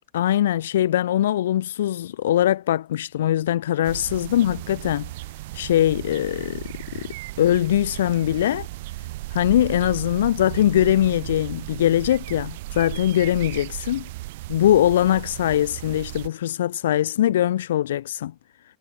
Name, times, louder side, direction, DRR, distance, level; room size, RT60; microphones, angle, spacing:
voice 1, 0.1-5.1 5.5-8.7 9.3-14.0 14.5-18.3, left 12 dB, 60° left, 0.3 m, -22 dB
sound 1, 3.8-16.3, right 19 dB, 50° right, 0.4 m, -35 dB
figure-of-eight pair, 90°, 0 cm